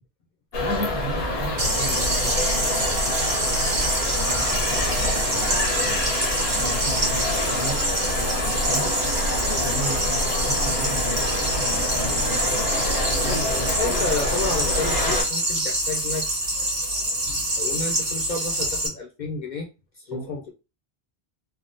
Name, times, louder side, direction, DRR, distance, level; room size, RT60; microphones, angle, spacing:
sound 1, 0.5-15.2, left 1 dB, 75° left, 1.1 m, -26 dB
voice 1, 0.6-3.2 3.8-6.1 6.5-7.8 8.1-8.9 9.5-12.7 13.2-13.6 20.1-20.5, right 1 dB, 25° right, -1 dB, 0.9 m, -36 dB
sound 2, 1.6-18.9, right 1 dB, 60° right, 1.3 m, -26 dB
voice 2, 13.8-16.3 17.6-19.7 20.1-20.5, left 3 dB, 55° left, 0 dB, 0.7 m, -30 dB
3.5 x 2.2 x 2.5 m, 0.29 s
omnidirectional pair, 1.1 m